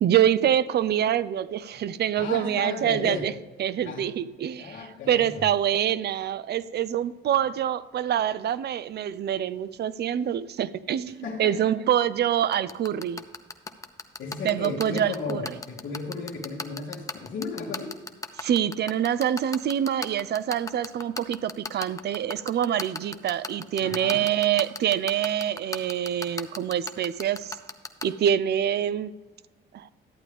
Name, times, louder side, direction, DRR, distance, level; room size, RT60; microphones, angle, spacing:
voice 1, 0.0-3.3 3.6-13.2 14.4-15.5 18.4-27.6 28.0-29.1 29.7-29.9, right 10 dB, 55° right, 17 dB, 0.5 m, -25 dB
voice 2, 2.2-3.3 3.8-4.1 4.6-5.5 11.2-11.6 14.2-18.0 23.8-24.3, left 4 dB, 75° left, -6 dB, 1.7 m, -34 dB
sound 1, 12.5-28.0, left 3 dB, 15° left, 0.7 m, -33 dB
11.5 x 8.2 x 3.5 m, 1.3 s
cardioid pair, 90°, 20 cm